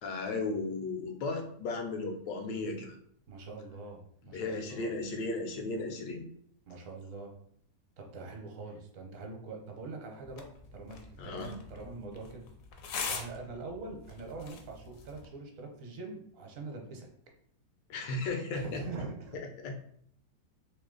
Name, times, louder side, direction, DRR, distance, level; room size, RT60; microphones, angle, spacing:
voice 1, 0.0-3.0 4.3-6.2 11.2-11.6 17.9-18.8 19.3-19.7, left 3 dB, 85° left, 4 dB, 1.4 m, -35 dB
voice 2, 3.3-5.0 6.7-7.3 8.0-10.5 10.7-12.4 13.1-17.1 18.5-19.4, right 3 dB, 55° right, 2 dB, 1.1 m, -44 dB
sound 1, 10.2-15.3, left 5 dB, 65° left, 0.9 m, -43 dB
3.3 x 3.1 x 3.8 m, 0.65 s
omnidirectional pair, 1.8 m